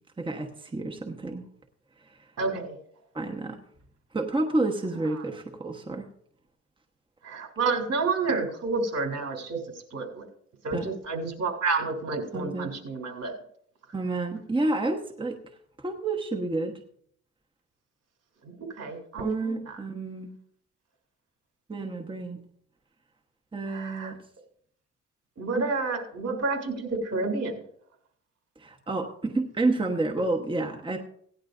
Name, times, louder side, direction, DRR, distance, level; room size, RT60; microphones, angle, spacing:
voice 1, 0.2-1.4 2.0-2.3 3.1-3.6 4.1-6.1 10.7-10.9 12.3-12.7 13.9-15.4 15.8-16.8 19.2-20.3 21.7-22.4 23.5-24.2 28.6-31.0, right 2 dB, 15° right, 2 dB, 1.1 m, -29 dB
voice 2, 2.4-2.8 7.2-9.6 9.9-10.3 10.6-13.3 18.4-19.8 23.7-24.1 25.4-27.6, right 3 dB, 55° right, 2 dB, 3.2 m, -30 dB
17.5 x 10.5 x 2.6 m, 0.65 s
cardioid pair, 90°, 30 cm